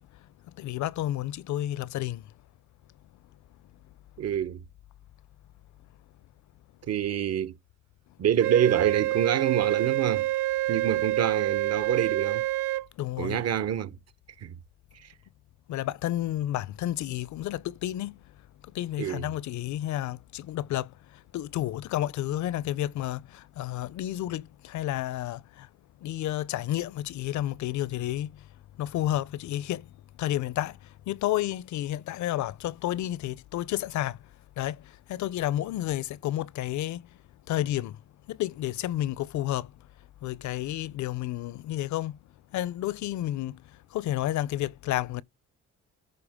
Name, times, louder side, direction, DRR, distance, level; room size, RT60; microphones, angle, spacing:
voice 1, 0.6-2.2 13.0-13.4 15.7-18.2 18.7-20.9 21.3-25.7 26.0-28.3 28.8-29.9 30.2-30.8 31.1-34.2 34.6-34.8 35.1-37.0 37.5-38.0 38.3-39.7 40.2-42.2 42.5-43.6 43.9-45.2, left 13 dB, 70° left, 0.5 m, -31 dB
voice 2, 4.2-4.6 6.9-7.5 8.2-10.3 10.7-12.5 13.2-14.0 14.4-14.5 15.0-15.1 19.0-19.2, right 9 dB, 55° right, 1.0 m, -26 dB
Wind instrument woodwind instrument, 8.4-12.9, right 17 dB, 85° right, 0.6 m, -27 dB
13.5 x 4.7 x 3.6 m
cardioid pair, 90°, 30 cm